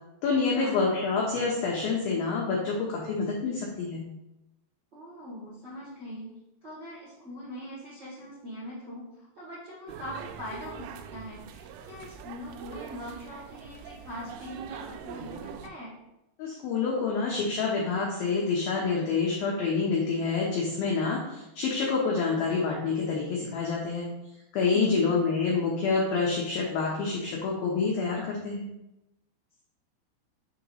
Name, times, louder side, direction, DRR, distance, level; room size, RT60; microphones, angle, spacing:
voice 1, 0.2-4.0 16.4-24.1 24.5-28.7, left 4 dB, 80° left, -2 dB, 2.1 m, -27 dB
voice 2, 4.9-6.3 6.6-15.9 24.7-25.1, left 1 dB, 50° right, -10 dB, 1.3 m, -42 dB
sound 1, 9.9-15.7, right 8 dB, 85° right, 2.9 m, -43 dB
6.8 x 2.9 x 5.4 m, 0.91 s
omnidirectional pair, 5.4 m